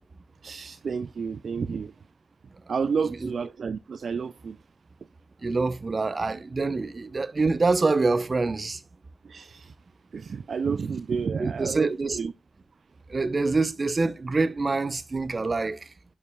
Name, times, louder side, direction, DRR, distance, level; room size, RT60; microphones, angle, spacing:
voice 1, 0.4-1.9 2.7-4.6 9.2-9.7 10.1-12.3, right 5 dB, 75° right, 0.3 m, -30 dB
voice 2, 5.4-8.8 11.4-12.2 13.1-15.8, right 3 dB, 50° right, 0.8 m, -25 dB
11.0 x 5.5 x 2.3 m
cardioid pair, 45°, 0 cm